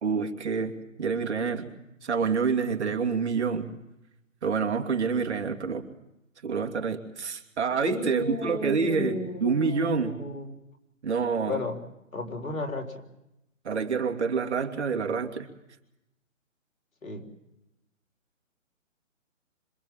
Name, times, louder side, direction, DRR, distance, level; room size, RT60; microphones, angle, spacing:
voice 1, 0.0-1.7 2.0-3.7 4.4-5.8 6.4-10.1 11.0-11.6 13.6-15.5, right 5 dB, 55° right, 4 dB, 2.8 m, -27 dB
voice 2, 7.8-10.5 11.5-11.8 12.1-13.0 17.0-17.3, left 2 dB, 90° left, 6 dB, 4.4 m, -33 dB
26.5 x 24.5 x 7.5 m, 0.88 s
hypercardioid pair, 155°, 40 cm